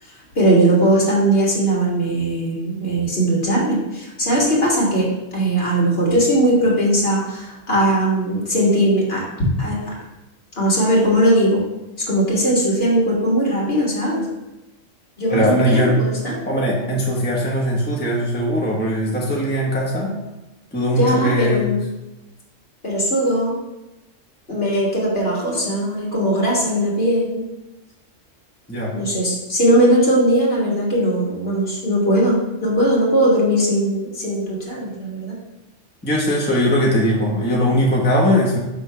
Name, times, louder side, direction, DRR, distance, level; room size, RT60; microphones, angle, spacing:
voice 1, 0.0-5.1 5.3-9.2 9.6-9.9 10.5-11.6 12.1-14.2 15.2-16.4 21.0-21.8 22.8-23.5 24.5-27.5 28.9-35.4, right 1 dB, 50° left, -4 dB, 2.0 m, -19 dB
voice 2, 15.3-16.0 16.4-20.2 20.7-21.7 28.7-28.9 36.0-38.6, equal, 10° left, -3 dB, 0.8 m, -20 dB
5.0 x 3.8 x 5.7 m, 1.0 s
omnidirectional pair, 1.3 m